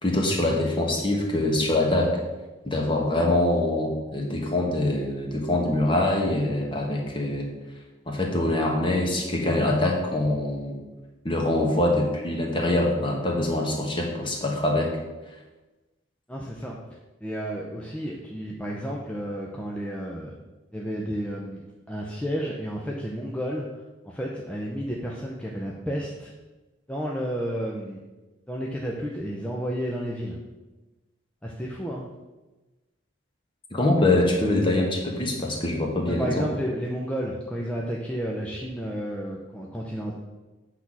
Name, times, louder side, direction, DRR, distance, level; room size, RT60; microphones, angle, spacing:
voice 1, 0.0-2.2 2.6-7.4 8.1-10.8 11.2-14.9 33.7-36.5, left 1 dB, 25° left, 0 dB, 1.3 m, -24 dB
voice 2, 16.3-16.8 17.2-20.3 20.7-26.3 26.9-28.0 28.5-30.4 31.4-32.1 36.1-40.2, equal, 5° left, -2 dB, 0.6 m, -31 dB
8.3 x 4.1 x 6.0 m, 1.1 s
head